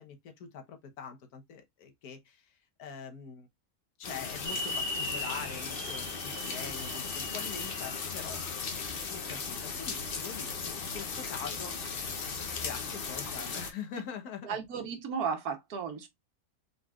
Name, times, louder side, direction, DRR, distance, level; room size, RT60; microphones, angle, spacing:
voice 1, 0.0-3.5 4.0-8.4 9.1-11.9 12.6-14.6, left 7 dB, 80° left, 1.4 m, -44 dB
sound 1, 4.0-13.7, left 5 dB, 45° left, 0.8 m, -37 dB
sound 2, 4.4-8.6, left 1 dB, 15° right, 1.2 m, -39 dB
voice 2, 14.4-16.1, right 6 dB, 85° right, 1.4 m, -34 dB
3.9 x 3.9 x 2.3 m
omnidirectional pair, 1.6 m